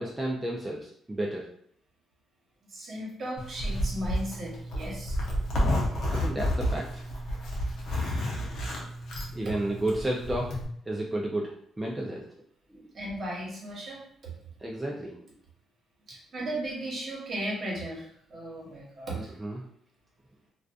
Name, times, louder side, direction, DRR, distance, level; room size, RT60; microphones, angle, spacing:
voice 1, 0.0-1.5 5.5-7.0 9.3-12.2 12.7-12.9 14.6-15.2 19.4-19.6, right 1 dB, 15° right, -2 dB, 0.4 m, -32 dB
voice 2, 2.7-5.2 12.9-14.0 16.1-19.3, right 1 dB, 55° right, -4 dB, 1.0 m, -36 dB
Zipper (clothing), 3.4-10.6, equal, 70° left, 0.7 m, -31 dB
2.5 x 2.3 x 2.4 m, 0.67 s
cardioid pair, 90°, 0 cm